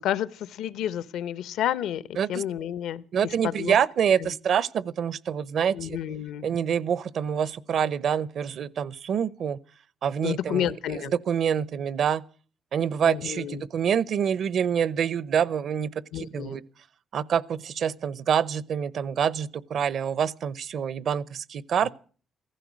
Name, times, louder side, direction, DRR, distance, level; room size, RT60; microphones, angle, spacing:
voice 1, 0.0-2.0 2.3-3.0 3.4-3.7 4.2-4.3 5.7-6.5 10.2-11.1 13.0-13.7 16.1-16.6, left 10 dB, 85° left, 0.8 m, -30 dB
voice 2, 3.1-6.0 6.4-9.6 10.0-12.2 12.7-16.6 17.1-21.9, right 8 dB, 65° right, 0.7 m, -26 dB
15.5 x 14.5 x 6.3 m
cardioid pair, 90°, 0 cm